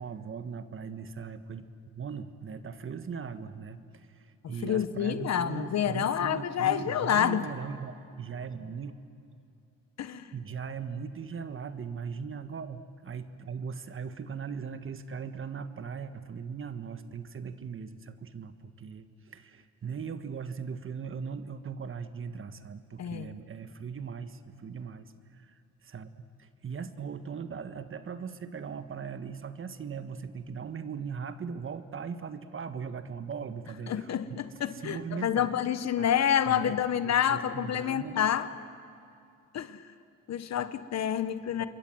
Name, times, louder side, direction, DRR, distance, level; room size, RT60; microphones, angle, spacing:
voice 1, 0.0-1.6 1.9-8.9 10.3-26.1 26.4-35.5 36.0-36.1 36.5-36.8 37.0-38.2 41.6-41.7, right 6 dB, 45° right, 10 dB, 1.5 m, -39 dB
voice 2, 4.6-7.4 10.0-10.3 23.0-23.3 33.9-38.5 39.5-39.8 40.3-41.7, left 9 dB, 60° left, 12 dB, 1.3 m, -28 dB
28.0 x 22.5 x 7.9 m, 2.5 s
cardioid pair, 90°, 30 cm